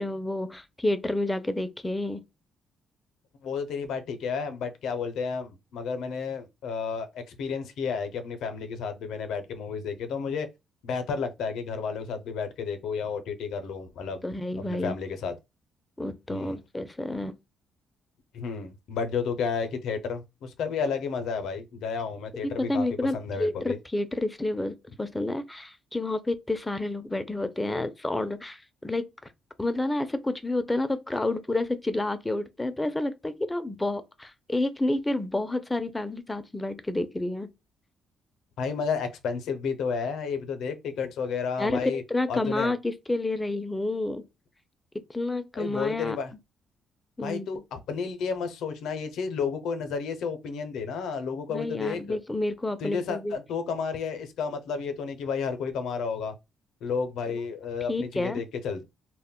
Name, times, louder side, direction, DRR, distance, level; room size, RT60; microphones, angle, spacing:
voice 1, 0.0-2.2 14.2-15.0 16.0-17.4 22.6-29.1 29.6-37.5 41.6-44.2 45.1-46.2 47.2-47.6 51.5-53.4 57.3-57.4 57.9-58.4, left 2 dB, 15° left, 0.4 m, -29 dB
voice 2, 3.4-10.5 10.8-14.2 14.6-15.3 16.3-16.6 18.3-22.8 23.1-23.8 38.6-42.0 42.3-42.7 45.5-46.3 47.2-52.2 52.8-56.3 56.8-58.8, left 5 dB, 80° left, 0.5 m, -32 dB
2.1 x 2.1 x 3.6 m
cardioid pair, 90°, 0 cm